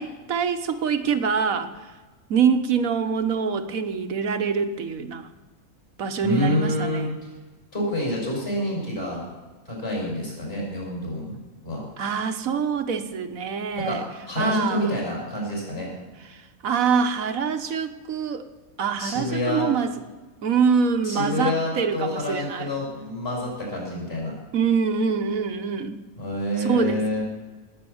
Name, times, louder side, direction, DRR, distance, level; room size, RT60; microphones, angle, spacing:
voice 1, 0.0-1.7 2.3-5.3 6.0-7.1 12.0-14.0 14.4-14.9 16.3-18.5 18.8-19.9 20.4-22.7 24.5-26.0 26.6-27.2, right 6 dB, 70° right, 9 dB, 1.4 m, -25 dB
voice 2, 6.2-7.3 7.7-9.2 9.6-11.4 11.6-11.9 13.8-14.0 14.3-15.9 19.0-19.7 21.0-24.3 26.2-27.2, left 1 dB, 40° left, -3 dB, 6.7 m, -27 dB
19.5 x 8.7 x 7.1 m, 1.2 s
omnidirectional pair, 1.5 m